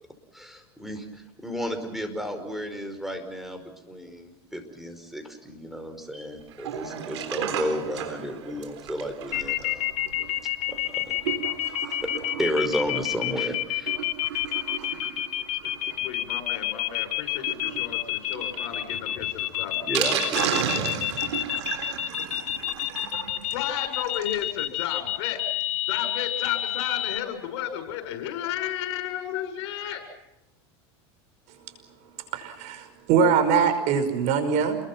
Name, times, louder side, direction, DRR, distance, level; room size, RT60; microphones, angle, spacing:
voice 1, 0.3-9.9 10.7-11.2 11.7-12.1 12.4-14.0 19.8-21.0, equal, ahead, 6 dB, 5.2 m, -33 dB
Sink (filling or washing), 6.5-24.5 24.9-25.0 25.1-25.2 25.6-25.7, right 9 dB, 85° right, 3.9 m, -35 dB
sound 1, 9.3-27.2, left 15 dB, 50° left, 1.5 m, -28 dB
voice 2, 16.0-20.3 23.5-25.4 25.9-30.0, left 10 dB, 75° left, 6 dB, 6.9 m, -33 dB
voice 3, 32.3-34.8, right 6 dB, 55° right, 9 dB, 5.4 m, -22 dB
29.0 x 22.5 x 6.0 m, 0.88 s
supercardioid pair, 115°, 14 cm